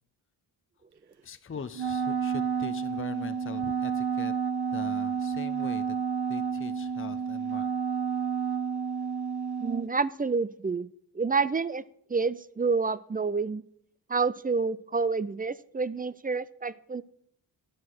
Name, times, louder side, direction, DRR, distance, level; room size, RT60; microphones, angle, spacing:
voice 1, 1.2-4.3 4.7-6.0 6.3-7.7, left 5 dB, 30° left, 11 dB, 0.6 m, -41 dB
Wind instrument woodwind instrument, 1.7-9.9, right 6 dB, 60° right, 0.7 m, -30 dB
voice 2, 9.6-10.9 11.1-11.8 12.1-13.6 14.1-17.0, right 4 dB, 20° right, 18 dB, 0.3 m, -28 dB
9.6 x 6.4 x 6.1 m, 0.70 s
cardioid pair, 50°, 44 cm